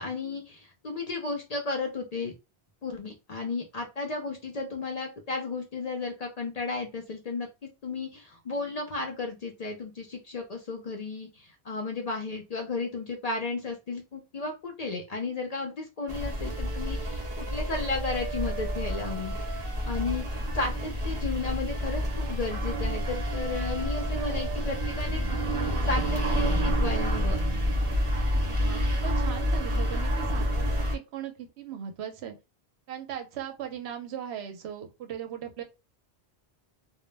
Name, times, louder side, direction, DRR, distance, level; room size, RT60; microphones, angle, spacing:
voice 1, 0.0-2.3 2.8-19.3 19.8-25.2 25.5-27.4, left 3 dB, 50° left, 0.5 m, -34 dB
sound 1, 16.1-31.0, equal, 35° right, 0.7 m, -29 dB
sound 2, 16.5-20.8 21.7-26.3, right 7 dB, 60° right, 0.9 m, -43 dB
voice 2, 28.5-32.4 32.9-35.6, right 9 dB, 85° right, 0.8 m, -38 dB
2.1 x 2.0 x 3.1 m
omnidirectional pair, 1.1 m